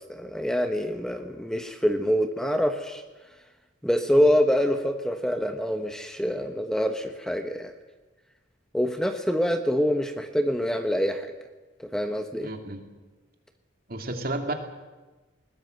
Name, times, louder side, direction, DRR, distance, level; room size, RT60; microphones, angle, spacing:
voice 1, 0.0-3.0 3.8-7.7 8.7-11.3 11.8-12.5, equal, 5° left, 6 dB, 1.1 m, -25 dB
voice 2, 12.4-12.8 13.9-14.5, right 2 dB, 50° right, 4 dB, 2.7 m, -32 dB
21.0 x 19.5 x 7.9 m, 1.2 s
head